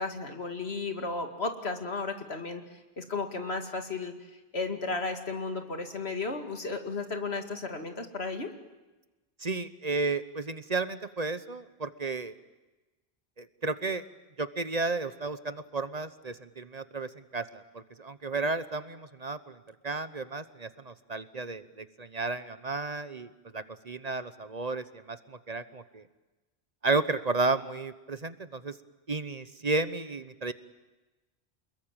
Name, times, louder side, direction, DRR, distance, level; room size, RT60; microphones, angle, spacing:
voice 1, 0.0-2.6 3.0-4.1 4.5-8.5, left 3 dB, 85° left, 5 dB, 2.6 m, -34 dB
voice 2, 9.4-12.3 13.4-14.0 14.4-19.5 19.8-26.0 26.8-28.7 29.1-30.5, right 3 dB, 40° right, 13 dB, 1.1 m, -33 dB
28.5 x 21.0 x 9.0 m, 1.1 s
omnidirectional pair, 1.0 m